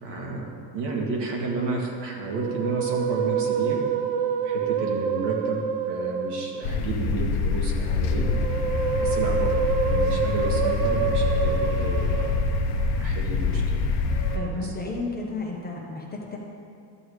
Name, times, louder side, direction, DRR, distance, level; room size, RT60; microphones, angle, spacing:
voice 1, 0.0-3.8 4.4-8.3 9.0-12.4 13.0-13.9 14.6-14.7, right 3 dB, 55° right, -1 dB, 1.9 m, -32 dB
Musical instrument, 2.2-6.8 8.1-12.9 14.1-14.5, right 7 dB, 80° right, 0.9 m, -27 dB
sound 1, 6.6-14.4, left 4 dB, 60° left, 1.0 m, -25 dB
voice 2, 14.3-16.4, left 3 dB, 20° left, -2 dB, 1.1 m, -32 dB
13.0 x 7.0 x 3.3 m, 2.3 s
supercardioid pair, 130°, 49 cm